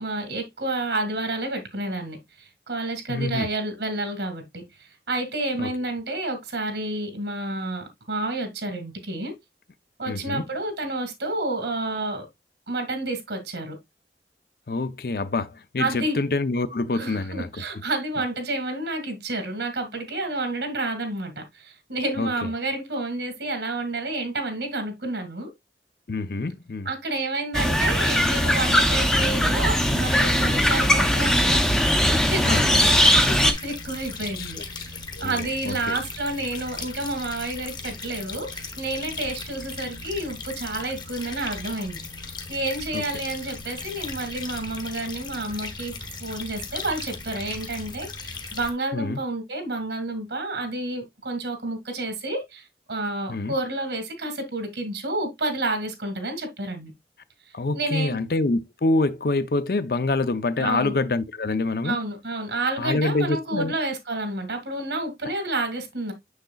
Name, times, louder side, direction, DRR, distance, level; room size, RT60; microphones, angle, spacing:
voice 1, 0.0-9.3 10.0-12.3 12.7-13.8 15.8-16.2 16.9-25.5 26.9-31.7 32.1-42.1 42.5-45.9 46.2-56.9 57.7-58.2 60.6-60.9 61.8-66.1, right 2 dB, 80° right, 2.1 m, -30 dB
voice 2, 3.1-3.5 5.6-5.7 10.1-10.4 14.7-17.5 22.2-22.3 26.1-26.9 32.4-32.9 34.4-34.9 35.2-36.0 42.9-43.0 48.9-49.2 53.3-53.5 57.5-62.0 62.8-63.7, left 2 dB, 55° left, 0.6 m, -26 dB
sound 1, 27.5-33.5, equal, 5° left, 0.6 m, -20 dB
sound 2, 32.7-48.7, left 3 dB, 25° left, 1.0 m, -37 dB
6.7 x 6.5 x 2.3 m
head